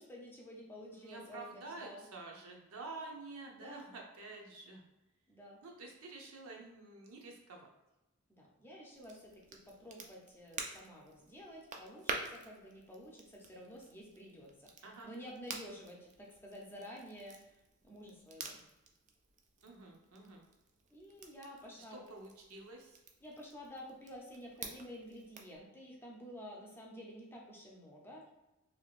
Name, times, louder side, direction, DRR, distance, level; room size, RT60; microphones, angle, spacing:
voice 1, 0.0-2.1 3.5-3.8 5.3-5.6 8.3-14.7 15.0-17.6 17.8-18.6 20.9-22.1 23.2-28.3, equal, 10° left, -2 dB, 0.6 m, -51 dB
voice 2, 0.9-4.8 5.6-7.7 14.8-15.1 19.6-20.4 21.9-23.0, right 3 dB, 90° right, 0 dB, 0.7 m, -49 dB
Crackle, 8.9-25.6, right 4 dB, 35° right, 0.4 m, -49 dB
3.3 x 2.8 x 2.4 m, 0.97 s
head